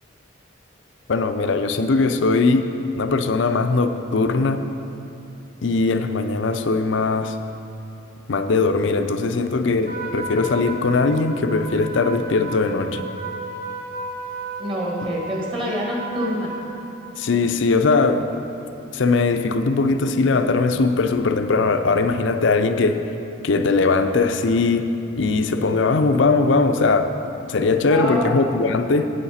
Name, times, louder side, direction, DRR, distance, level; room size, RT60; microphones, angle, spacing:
voice 1, 1.1-2.7 3.0-4.6 5.6-7.4 8.3-13.1 17.2-18.2 18.9-23.1 23.4-24.9 25.2-27.1 27.5-29.1, left 3 dB, 65° left, 8 dB, 0.5 m, -20 dB
Trumpet, 9.8-16.7, right 4 dB, 45° right, 1.0 m, -34 dB
voice 2, 14.6-16.5 27.9-28.6, equal, 25° right, -3 dB, 1.5 m, -26 dB
10.5 x 8.1 x 4.2 m, 2.9 s
head